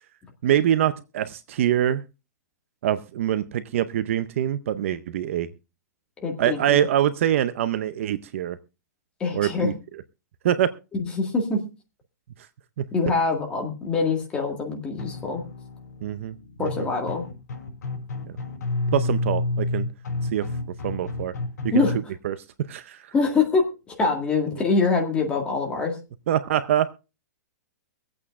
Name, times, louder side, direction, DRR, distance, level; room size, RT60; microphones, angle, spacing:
voice 1, 0.4-2.0 2.8-5.5 6.4-8.6 9.3-9.7 10.4-10.7 12.8-12.9 16.0-16.9 18.9-19.9 20.3-20.5 20.8-21.3 22.2-22.4 22.7-23.0 26.3-26.9, right 11 dB, 45° right, 13 dB, 0.6 m, -24 dB
voice 2, 6.2-6.9 9.2-9.7 11.0-11.6 12.9-15.4 16.6-17.2 21.7-22.1 23.1-26.0, left 4 dB, 10° left, 1 dB, 1.8 m, -24 dB
sound 1, 15.0-22.0, left 2 dB, 70° left, 4.7 m, -30 dB
24.0 x 8.5 x 2.4 m, 0.29 s
hypercardioid pair, 170°, 10 cm